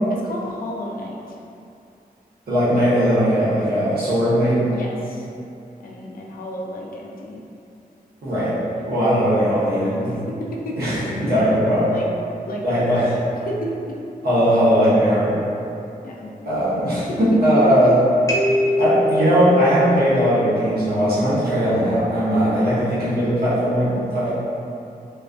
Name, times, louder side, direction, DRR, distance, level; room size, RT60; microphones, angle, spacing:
voice 1, 0.1-1.4 4.7-5.3 5.8-7.4 10.0-10.8 11.1-11.4 11.8-12.1 12.5-12.9 13.4-14.0 16.0-16.3 17.1-17.9 18.5-18.8, left 1 dB, 65° left, -2 dB, 0.4 m, -32 dB
voice 2, 2.5-4.6 8.2-8.5 8.8-10.1 10.8-11.9 12.6-13.1 14.2-15.3 16.4-18.0 18.8-24.3, equal, 80° right, -11 dB, 0.9 m, -19 dB
sound 1, 16.4-17.8 18.3-21.0, left 1 dB, 20° left, 0.6 m, -26 dB
2.4 x 2.3 x 2.3 m, 2.6 s
cardioid pair, 65°, 16 cm